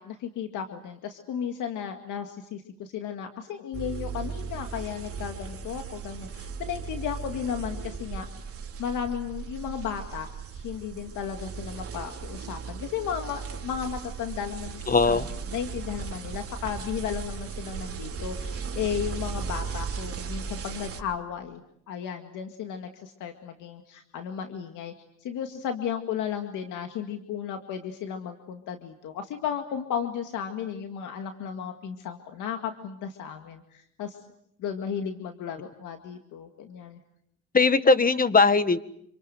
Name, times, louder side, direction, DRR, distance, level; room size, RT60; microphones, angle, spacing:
voice 1, 0.0-8.3 8.8-24.9 25.2-34.2 34.6-37.0, left 8 dB, 90° left, 6 dB, 2.1 m, -34 dB
sound 1, 3.7-21.0, right 5 dB, 50° right, 3.4 m, -37 dB
voice 2, 14.9-15.3 37.5-38.8, left 4 dB, 30° left, 12 dB, 1.7 m, -19 dB
28.0 x 26.0 x 7.8 m, 0.73 s
cardioid pair, 90°, 30 cm